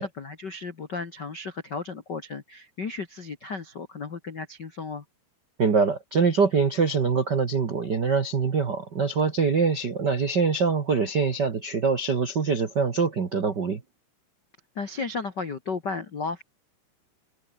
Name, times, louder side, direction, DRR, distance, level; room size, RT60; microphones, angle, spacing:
voice 1, 0.0-5.0 14.7-16.4, left 4 dB, 75° left, 0.9 m, -34 dB
voice 2, 5.6-13.8, right 5 dB, 85° right, 0.9 m, -24 dB
omnidirectional pair, 5.0 m